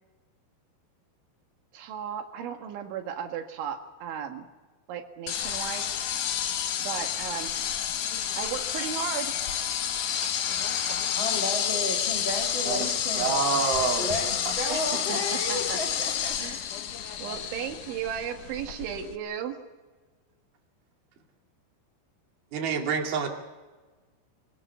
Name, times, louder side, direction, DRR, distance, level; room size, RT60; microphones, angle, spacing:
voice 1, 1.7-4.5 4.9-5.9 6.8-7.6 8.4-9.7 10.1-11.0 14.7-14.8 15.1-15.2 15.5-15.8 16.4-16.7 17.2-19.6, right 8 dB, 80° right, 5 dB, 4.1 m, -35 dB
sound 1, 5.3-19.2, left 9 dB, 75° left, 1.9 m, -30 dB
voice 2, 11.1-13.5 14.0-16.6 17.0-17.2, left 1 dB, 45° left, 3 dB, 1.7 m, -33 dB
voice 3, 12.6-14.6 22.5-23.3, right 5 dB, 60° right, 2 dB, 4.0 m, -28 dB
25.0 x 19.0 x 8.3 m, 1.3 s
omnidirectional pair, 5.4 m